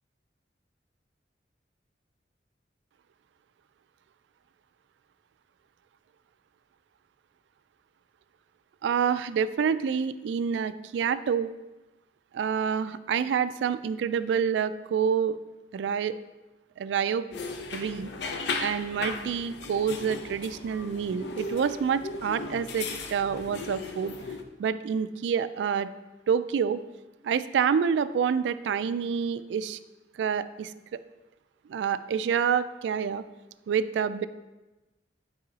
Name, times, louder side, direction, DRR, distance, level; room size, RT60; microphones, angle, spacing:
voice 1, 8.8-11.5 12.3-15.4 15.7-16.2 16.8-17.2 17.7-18.1 18.6-24.2 24.6-25.9 26.3-26.8 27.2-29.8 30.2-30.7 31.7-33.2 33.7-34.3, right 7 dB, 90° right, 14 dB, 0.3 m, -27 dB
sound 1, 17.3-24.4, left 3 dB, 75° left, 0.5 m, -36 dB
5.3 x 4.8 x 4.0 m, 1.1 s
head